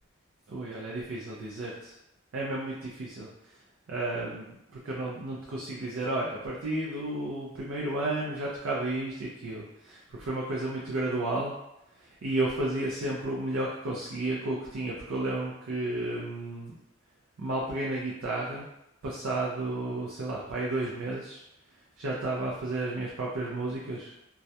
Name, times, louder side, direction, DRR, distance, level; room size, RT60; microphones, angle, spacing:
voice 1, 0.5-1.9 2.3-3.6 3.9-11.5 12.0-16.8 17.4-18.7 19.0-21.4 22.0-24.1, right 2 dB, 90° right, -4 dB, 0.4 m, -32 dB
2.3 x 2.1 x 2.7 m, 0.86 s
head